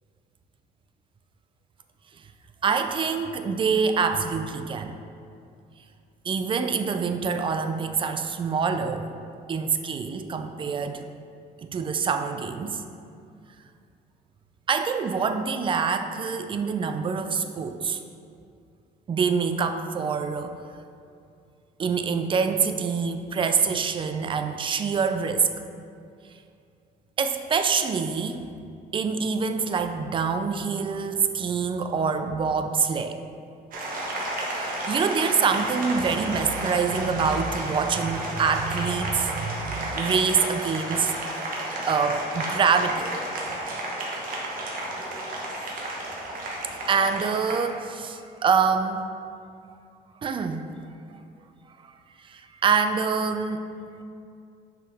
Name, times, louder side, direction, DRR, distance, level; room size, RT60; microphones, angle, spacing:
voice 1, 2.6-5.0 6.2-9.1 9.5-11.0 11.7-12.8 14.7-18.0 19.1-20.6 21.8-25.5 27.2-28.4 28.9-33.2 34.4-41.1 41.9-43.2 46.7-49.1 50.2-50.7 52.2-53.6, right 5 dB, 30° right, 7 dB, 0.4 m, -25 dB
Applause, 33.7-47.7, right 1 dB, 55° right, 1.2 m, -32 dB
6.0 x 4.9 x 3.5 m, 2.5 s
cardioid pair, 110°, 17 cm